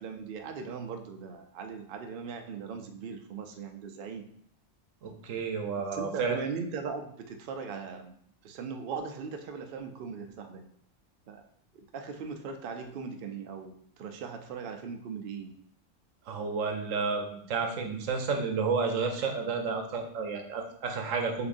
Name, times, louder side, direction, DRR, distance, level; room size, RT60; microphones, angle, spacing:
voice 1, 0.0-4.3 5.8-8.2 8.4-10.7 11.3-11.5 11.7-15.5, right 5 dB, 60° right, 6 dB, 0.6 m, -39 dB
voice 2, 5.0-6.4 16.3-21.5, right 4 dB, 90° right, 4 dB, 1.0 m, -31 dB
6.7 x 2.5 x 2.6 m, 0.65 s
omnidirectional pair, 1.3 m